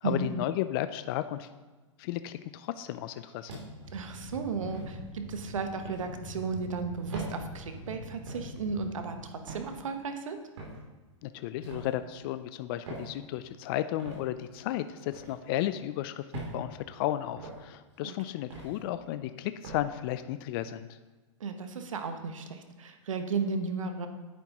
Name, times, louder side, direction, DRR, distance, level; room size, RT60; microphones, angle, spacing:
voice 1, 0.0-1.5 2.0-3.6 11.2-21.0, left 13 dB, 45° left, 12 dB, 0.4 m, -34 dB
sound 1, 3.5-3.9 4.6-4.9 5.8-6.1 7.1-7.3 8.3-8.5 9.5-9.7 10.6-10.8 11.6-11.9 12.8-13.1 14.0-14.2 15.1-15.3 16.3-16.6 17.4-17.6 18.5-18.8 19.6-19.8, right 3 dB, 65° right, 3.1 m, -41 dB
sound 2, 3.8-9.3, equal, 30° left, 2.4 m, -45 dB
voice 2, 3.9-10.4 18.0-18.1 21.4-24.1, right 5 dB, 80° right, 7 dB, 1.1 m, -34 dB
10.0 x 8.5 x 3.0 m, 1.2 s
hypercardioid pair, 120°, 17 cm